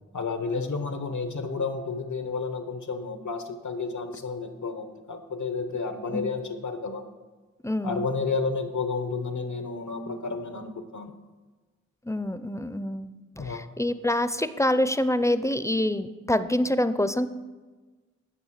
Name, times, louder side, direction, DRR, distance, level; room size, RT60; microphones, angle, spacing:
voice 1, 0.1-7.0 7.8-11.1 13.4-13.6, left 4 dB, 80° left, 7 dB, 1.0 m, -31 dB
voice 2, 7.6-8.1 12.0-17.3, left 1 dB, 10° left, 12 dB, 0.5 m, -26 dB
10.0 x 5.9 x 5.8 m, 1.3 s
cardioid pair, 40°, 29 cm